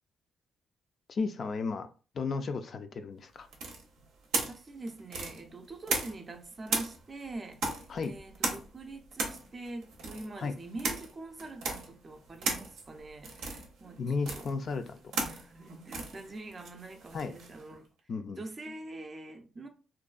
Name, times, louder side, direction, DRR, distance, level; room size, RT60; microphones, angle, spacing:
voice 1, 1.1-1.9 2.1-3.5 7.9-8.1 10.4-10.5 14.0-15.0 17.1-17.3 18.1-18.4, left 4 dB, 50° left, 0.3 m, -34 dB
sound 1, 3.5-6.3 6.7-17.6, right 3 dB, 85° right, 0.6 m, -36 dB
voice 2, 4.5-7.6 8.0-14.4 15.2-17.9 18.4-19.7, right 2 dB, 30° right, 0.4 m, -44 dB
2.5 x 2.2 x 2.4 m
cardioid pair, 90°, 0 cm